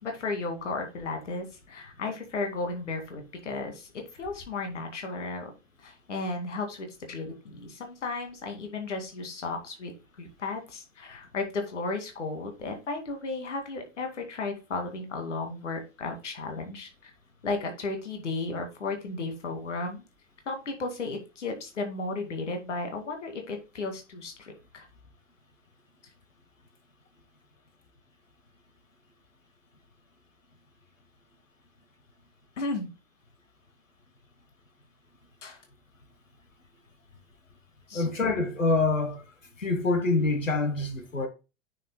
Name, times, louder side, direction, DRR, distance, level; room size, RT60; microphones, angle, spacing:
voice 1, 0.0-5.5 5.8-9.9 10.2-17.1 17.4-20.0 20.5-24.9 32.6-32.9 35.4-35.6 37.9-38.0, left 3 dB, 65° left, 2.3 m, -34 dB
voice 2, 37.9-39.2 39.6-41.3, left 3 dB, 80° left, 1.4 m, -26 dB
9.1 x 6.6 x 2.2 m
figure-of-eight pair, 100°, 38 cm